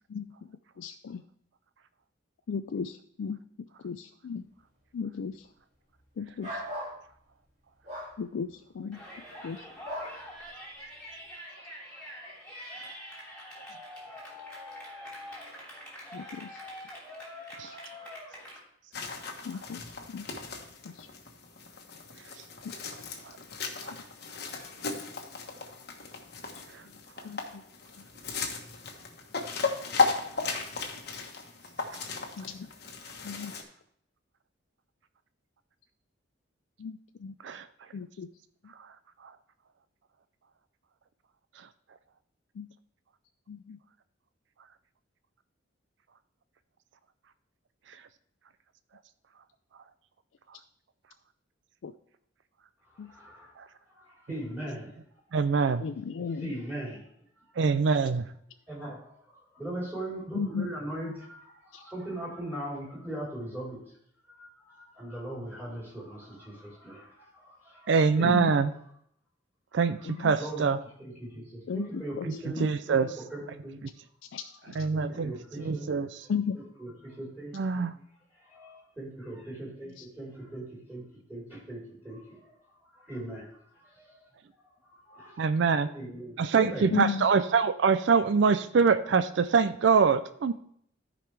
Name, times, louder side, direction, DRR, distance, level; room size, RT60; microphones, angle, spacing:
voice 1, 0.8-1.2 2.5-3.4 3.8-4.4 4.9-5.4 6.2-6.6 8.2-9.0 9.4-9.6 16.1-16.6 17.6-17.8 19.5-19.8 20.1-20.3 20.8-21.1 27.2-27.6 32.4-32.7 33.2-33.5 36.8-37.3 37.9-38.3 42.6-42.7 43.5-43.8 51.8-51.9 53.0-53.1 55.8-56.5 60.3-60.7 61.7-61.8 68.3-68.5 71.7-72.3 72.6-72.7 74.3-74.8 76.3-76.6 80.0-80.1 86.9-87.2, left 6 dB, 75° left, 8 dB, 0.4 m, -35 dB
sound 1, 6.4-7.0 7.9-8.1 9.8-10.1, equal, 35° right, 2.8 m, -36 dB
Yell, 8.9-18.6, left 1 dB, 5° left, 2.9 m, -45 dB
sound 2, 18.9-33.6, left 4 dB, 55° left, 1.2 m, -35 dB
voice 2, 22.1-23.4 23.8-24.0 26.7-27.4 31.9-32.1 32.4-32.5 33.4-33.5 37.4-37.9 38.7-39.4 41.5-42.0 44.6-44.7 47.8-48.1 48.9-49.0 49.3-49.4 49.7-49.9 50.5-50.6 53.6-53.7 55.3-55.8 57.5-58.3 67.9-68.7 69.7-70.8 72.2-73.6 73.8-73.9 74.6-76.3 77.5-78.0 84.4-84.5 85.4-85.9 86.4-90.5, right 5 dB, 65° right, 11 dB, 0.4 m, -27 dB
voice 3, 52.8-53.6 53.9-55.2 56.3-57.1 58.7-63.8 64.3-67.9 68.2-68.3 70.4-70.6 71.0-72.7 73.3-73.8 74.9-75.9 76.8-77.8 78.4-81.0 81.3-82.6 82.9-84.2 84.8-85.4 85.9-86.8, right 1 dB, 10° right, -7 dB, 4.2 m, -40 dB
14.0 x 5.0 x 3.4 m, 0.68 s
head